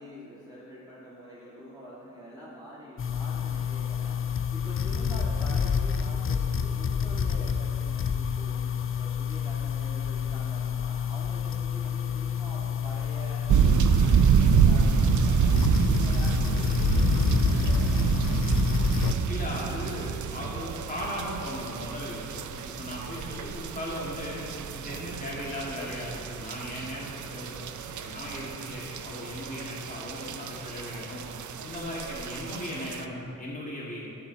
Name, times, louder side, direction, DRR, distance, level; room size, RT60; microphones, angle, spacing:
voice 1, 0.0-4.2 4.5-8.6 9.0-15.6 15.8-18.7, equal, 10° right, -10 dB, 1.8 m, -45 dB
sound 1, 3.0-19.1, left 7 dB, 40° left, 0.5 m, -28 dB
sound 2, 13.5-33.0, right 7 dB, 65° right, 0.5 m, -27 dB
voice 2, 19.3-24.4 24.7-31.2 31.6-34.1, left 1 dB, 25° left, -6 dB, 2.2 m, -37 dB
10.5 x 6.2 x 4.0 m, 2.6 s
cardioid pair, 75°, 33 cm